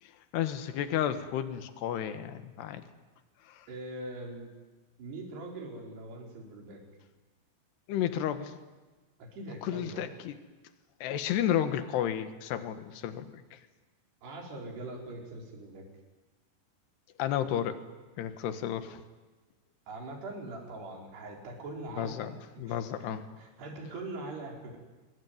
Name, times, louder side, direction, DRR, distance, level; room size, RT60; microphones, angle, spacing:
voice 1, 0.0-2.8 3.5-3.7 7.9-8.6 9.6-10.4 11.0-13.6 17.2-17.8 18.2-19.0 22.0-23.2, left 10 dB, 70° left, 9 dB, 3.4 m, -32 dB
voice 2, 3.7-4.5 5.0-6.8 9.2-10.1 14.2-15.8 19.9-24.8, right 2 dB, 65° right, 1 dB, 6.5 m, -42 dB
27.0 x 22.0 x 9.6 m, 1.2 s
omnidirectional pair, 5.3 m